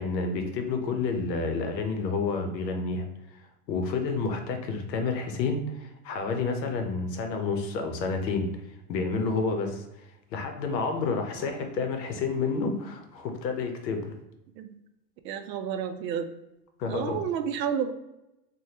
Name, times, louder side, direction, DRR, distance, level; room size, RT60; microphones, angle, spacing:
voice 1, 0.0-3.0 3.7-8.5 8.9-9.8 10.3-14.1 16.8-17.2, left 4 dB, 80° left, 5 dB, 0.8 m, -29 dB
voice 2, 15.2-16.3 16.9-17.9, right 8 dB, 85° right, 9 dB, 0.6 m, -31 dB
3.4 x 2.2 x 2.8 m, 0.91 s
supercardioid pair, 160°, 49 cm